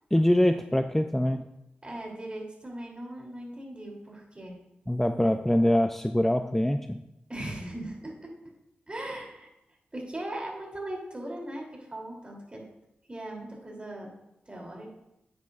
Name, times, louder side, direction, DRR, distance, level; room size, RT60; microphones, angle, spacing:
voice 1, 0.1-1.4 4.9-7.0, left 1 dB, 5° left, 7 dB, 0.5 m, -24 dB
voice 2, 1.8-4.6 5.2-5.3 7.3-8.4 8.9-9.5 9.9-12.6 13.1-14.1 14.5-15.0, right 1 dB, 30° right, -1 dB, 3.1 m, -39 dB
9.3 x 9.3 x 2.5 m, 0.86 s
cardioid pair, 50°, 4 cm